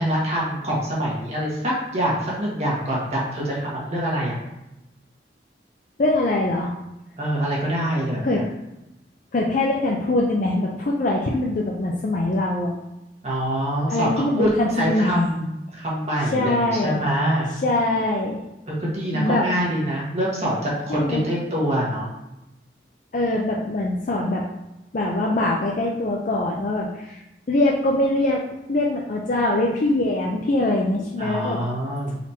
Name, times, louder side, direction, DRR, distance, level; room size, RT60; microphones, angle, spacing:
voice 1, 0.0-4.4 7.2-8.4 13.2-14.5 14.8-17.5 18.7-22.1 31.2-32.2, equal, 40° right, -5 dB, 1.4 m, -25 dB
voice 2, 6.0-6.7 8.2-8.4 9.3-12.7 13.9-15.3 16.3-17.0 17.6-18.4 19.1-19.5 20.9-21.2 23.1-24.4 24.9-27.2 27.5-28.4 28.7-31.6, left 2 dB, 45° left, -2 dB, 0.4 m, -23 dB
4.1 x 2.9 x 4.2 m, 0.93 s
head